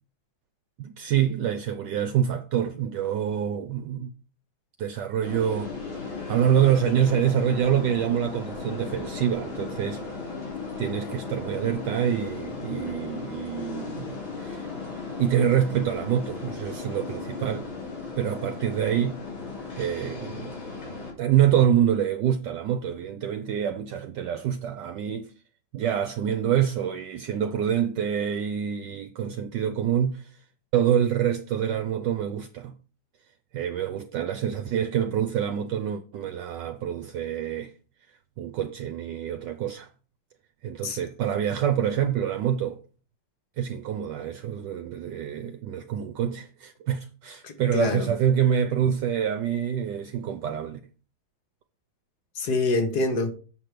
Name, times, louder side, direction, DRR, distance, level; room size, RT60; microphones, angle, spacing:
voice 1, 0.8-4.1 4.8-5.7 6.3-10.0 10.8-14.7 15.2-17.7 18.2-19.1 19.7-20.5 21.2-25.3 25.7-30.3 30.7-32.7 33.5-37.7 38.4-39.9 40.6-42.8 43.6-50.8, right 9 dB, 70° right, 1.2 m, -26 dB
sound 1, 5.2-21.1, left 4 dB, 85° left, 3.7 m, -36 dB
voice 2, 47.4-48.1 52.3-53.3, left 3 dB, 55° left, 1.7 m, -26 dB
7.7 x 6.1 x 5.0 m
omnidirectional pair, 2.1 m